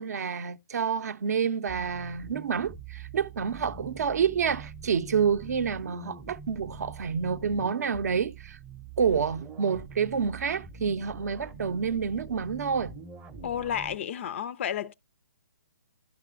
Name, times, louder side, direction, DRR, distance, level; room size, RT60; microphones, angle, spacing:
voice 1, 0.0-8.6 9.0-12.9, right 6 dB, 55° right, 0.6 m, -28 dB
sound 1, 1.7-14.0, right 5 dB, 15° right, 0.6 m, -44 dB
voice 2, 13.4-14.9, left 9 dB, 40° left, 0.4 m, -31 dB
11.5 x 6.0 x 2.3 m
figure-of-eight pair, 130°, 10 cm